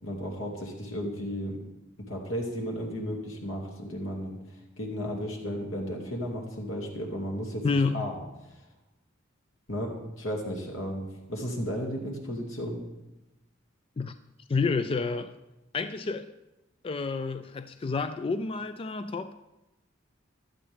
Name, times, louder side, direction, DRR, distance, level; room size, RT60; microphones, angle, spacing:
voice 1, 0.0-1.6 2.0-4.4 4.8-7.7 7.9-8.1 9.7-12.8, equal, 85° left, 0 dB, 2.4 m, -34 dB
voice 2, 7.6-8.1 14.0-14.1 14.5-15.3 15.7-16.3 16.8-19.3, left 4 dB, 30° left, 11 dB, 0.3 m, -29 dB
15.5 x 11.5 x 3.5 m, 0.98 s
head